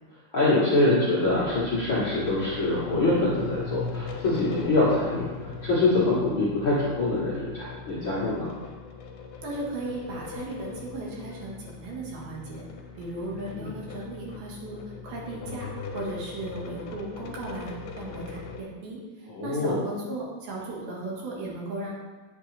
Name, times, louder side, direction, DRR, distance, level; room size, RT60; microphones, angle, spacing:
voice 1, 0.3-8.5 13.5-13.7 19.3-19.9, left 2 dB, 50° left, -9 dB, 1.5 m, -24 dB
sound 1, 1.2-18.6, left 5 dB, 70° left, 2.6 m, -39 dB
voice 2, 9.4-12.7 13.0-14.8 15.0-15.7 15.9-21.9, right 2 dB, 65° right, -4 dB, 3.4 m, -36 dB
8.7 x 8.3 x 3.4 m, 1.4 s
omnidirectional pair, 4.8 m